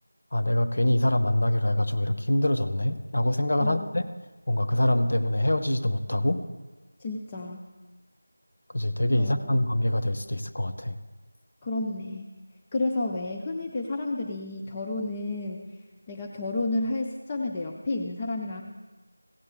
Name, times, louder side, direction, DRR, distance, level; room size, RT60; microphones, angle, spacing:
voice 1, 0.3-4.0 4.5-6.4 8.7-11.0, left 1 dB, 45° left, 7 dB, 0.7 m, -25 dB
voice 2, 3.6-3.9 7.0-7.6 9.2-9.6 11.6-12.3 12.7-15.7 16.1-18.6, left 2 dB, 10° left, 0 dB, 0.4 m, -31 dB
16.0 x 7.8 x 3.6 m, 1.2 s
figure-of-eight pair, 180°, 0 cm